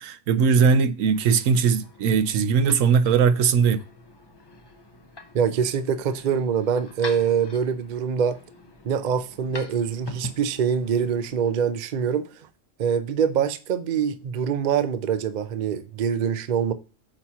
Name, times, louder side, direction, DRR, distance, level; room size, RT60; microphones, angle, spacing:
voice 1, 0.0-3.8, right 6 dB, 80° right, 1.0 m, -20 dB
sound 1, 0.9-11.5, left 2 dB, 25° left, 0.6 m, -44 dB
voice 2, 5.3-8.4 8.8-12.3 12.8-16.7, right 7 dB, 50° right, 0.5 m, -24 dB
8.7 x 3.0 x 5.5 m
omnidirectional pair, 1.4 m